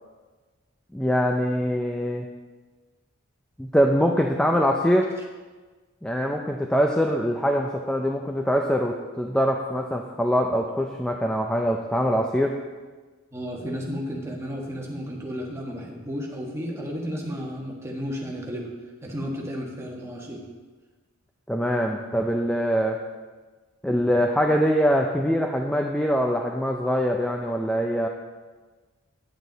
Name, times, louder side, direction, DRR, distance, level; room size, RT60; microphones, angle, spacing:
voice 1, 0.9-2.3 3.6-5.1 6.0-12.6 21.5-23.0 23.8-28.1, equal, 5° left, 2 dB, 0.4 m, -23 dB
voice 2, 13.3-18.7 19.0-20.5, equal, 15° right, -2 dB, 1.5 m, -33 dB
9.1 x 8.5 x 4.0 m, 1.3 s
head